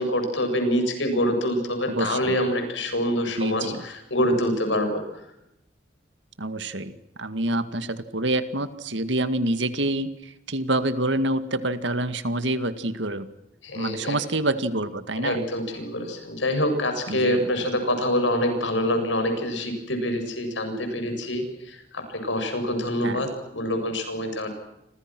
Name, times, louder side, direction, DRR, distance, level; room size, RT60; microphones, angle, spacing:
voice 1, 0.0-5.2 13.6-14.2 15.2-23.3 23.5-24.6, left 1 dB, 85° left, 6 dB, 7.6 m, -26 dB
voice 2, 1.9-2.2 3.4-3.8 6.4-13.3 13.7-15.4 17.1-17.5 23.0-23.3, right 1 dB, 80° right, 11 dB, 2.1 m, -27 dB
29.5 x 26.0 x 6.2 m, 0.85 s
head